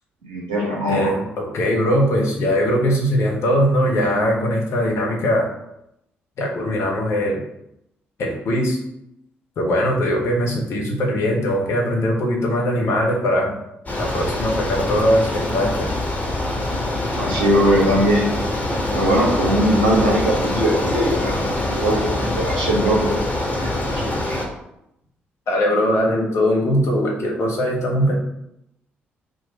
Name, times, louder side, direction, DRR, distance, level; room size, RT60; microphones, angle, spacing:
voice 1, 0.2-1.1 17.2-18.3 18.9-21.4 21.7-23.2 23.6-24.4, right 1 dB, 75° right, -4 dB, 1.2 m, -20 dB
voice 2, 0.9-5.5 6.4-7.4 8.2-8.8 9.6-13.6 14.0-15.9 25.5-28.2, equal, 55° left, 0 dB, 1.0 m, -20 dB
Bicycle, 13.9-24.5, left 1 dB, 30° left, 1.3 m, -24 dB
3.9 x 2.4 x 4.1 m, 0.80 s
figure-of-eight pair, 40°, 6 cm